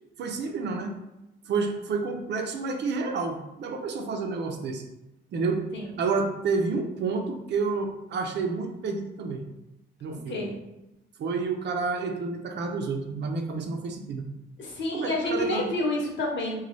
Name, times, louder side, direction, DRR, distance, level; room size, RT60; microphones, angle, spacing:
voice 1, 0.2-1.0 1.5-4.8 5.3-5.6 6.0-9.4 10.0-10.5 11.2-14.3 14.9-15.8, right 4 dB, 55° right, 4 dB, 0.6 m, -29 dB
voice 2, 14.6-16.6, left 1 dB, 60° left, -2 dB, 1.1 m, -28 dB
3.9 x 2.3 x 3.1 m, 0.94 s
cardioid pair, 110°, 21 cm